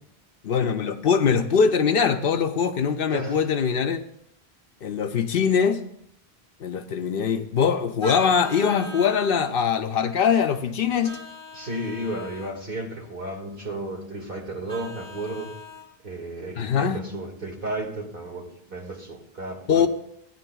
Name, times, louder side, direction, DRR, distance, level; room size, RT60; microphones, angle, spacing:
voice 1, 0.4-4.0 4.8-5.8 6.6-11.2 16.6-17.0 19.7-19.9, left 6 dB, 65° left, 8 dB, 0.8 m, -22 dB
Vehicle horn car horn honking, 8.0-9.6 11.0-12.5 14.7-15.9, equal, 85° right, 2.9 m, -40 dB
voice 2, 11.5-15.5 16.0-19.9, right 1 dB, 60° right, 0 dB, 2.0 m, -33 dB
16.0 x 9.9 x 2.3 m, 0.73 s
omnidirectional pair, 1.0 m